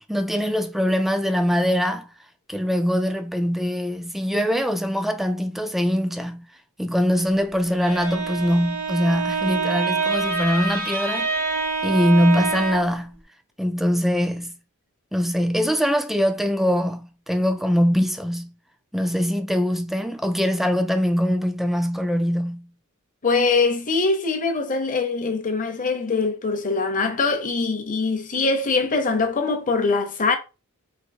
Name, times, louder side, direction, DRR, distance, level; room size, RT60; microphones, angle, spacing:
voice 1, 0.1-2.1 2.5-6.5 6.8-11.3 11.8-13.2 13.6-14.5 15.1-18.5 18.9-22.7, equal, ahead, 0.3 m, -22 dB
Bowed string instrument, 7.7-13.0, right 4 dB, 90° right, 1.7 m, -26 dB
voice 2, 23.2-30.4, left 4 dB, 35° left, 0.7 m, -23 dB
4.2 x 2.7 x 2.6 m
head